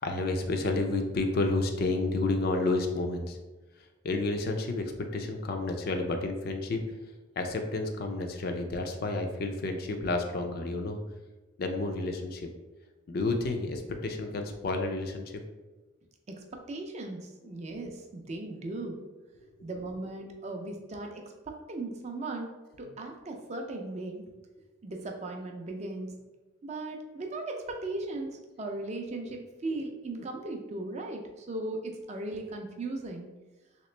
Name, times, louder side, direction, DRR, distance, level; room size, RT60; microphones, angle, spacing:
voice 1, 0.0-3.4 4.0-6.8 7.4-11.0 11.6-12.5 13.1-15.4 17.5-17.8 19.6-19.7 20.6-20.7, left 2 dB, 45° left, 5 dB, 0.4 m, -30 dB
voice 2, 16.3-19.0 19.6-22.5 22.8-24.3 24.8-26.1 26.6-33.3, right 2 dB, 35° right, 3 dB, 0.4 m, -37 dB
3.2 x 2.9 x 3.2 m, 1.2 s
head